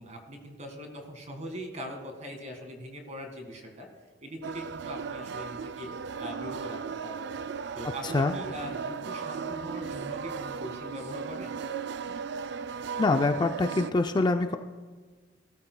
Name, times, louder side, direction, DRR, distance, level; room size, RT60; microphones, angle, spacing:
voice 1, 0.0-3.9 4.2-5.9 6.2-7.2 7.7-11.6, equal, 40° right, 4 dB, 1.8 m, -41 dB
sound 1, 4.4-13.9, right 6 dB, 65° right, 0.3 m, -36 dB
voice 2, 13.0-14.5, left 3 dB, 25° left, 7 dB, 0.4 m, -24 dB
18.5 x 13.0 x 2.2 m, 1.5 s
head